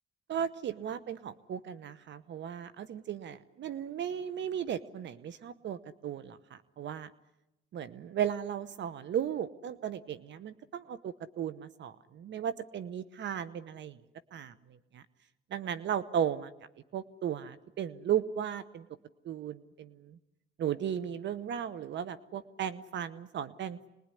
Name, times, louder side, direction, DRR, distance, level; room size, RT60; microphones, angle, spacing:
voice 1, 0.3-7.1 7.7-14.0 14.3-14.5 14.9-15.0 15.5-16.5 16.9-18.9 19.2-20.2 20.6-23.9, right 9 dB, 65° right, 14 dB, 1.0 m, -36 dB
25.5 x 21.0 x 9.9 m, 0.96 s
cardioid pair, 90°, 20 cm